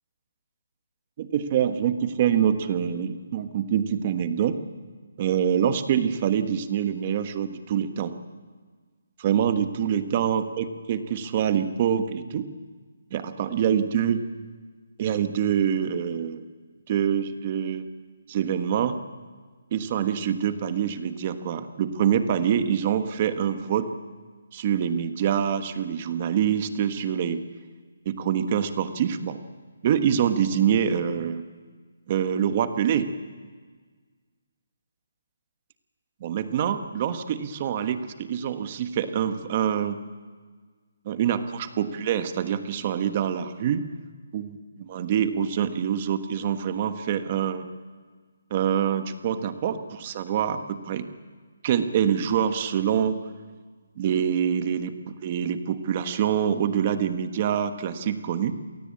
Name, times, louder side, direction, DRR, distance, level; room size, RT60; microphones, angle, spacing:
voice 1, 1.2-4.6 5.2-8.2 9.2-12.5 13.1-14.2 15.0-16.4 16.9-17.8 18.3-19.0 19.7-23.9 24.5-27.4 28.0-29.4 29.8-31.4 32.1-33.1 36.2-40.0 41.0-43.9 44.3-47.7 48.5-51.1 51.6-53.2 54.0-58.6, right 8 dB, 25° right, 9 dB, 1.3 m, -25 dB
28.0 x 18.0 x 8.5 m, 1.5 s
hypercardioid pair, 170°, 0 cm